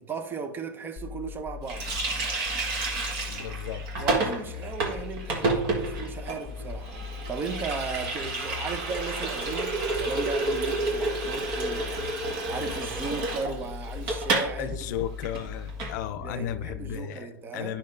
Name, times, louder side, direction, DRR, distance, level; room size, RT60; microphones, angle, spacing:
voice 1, 0.0-1.9 4.0-7.0 7.3-11.9 12.5-14.8 16.2-17.8, right 4 dB, 20° right, 0.7 m, -36 dB
sound 1, 1.0-17.0, left 6 dB, 5° left, 1.8 m, -40 dB
Water tap faucet, 1.7-14.5 14.8-14.9 15.2-15.9, right 2 dB, 40° right, 1.7 m, -30 dB
voice 2, 3.3-3.9 5.4-5.5 14.6-17.8, left 9 dB, 55° left, 0.6 m, -35 dB
10.5 x 5.7 x 2.6 m
hypercardioid pair, 130°, 11 cm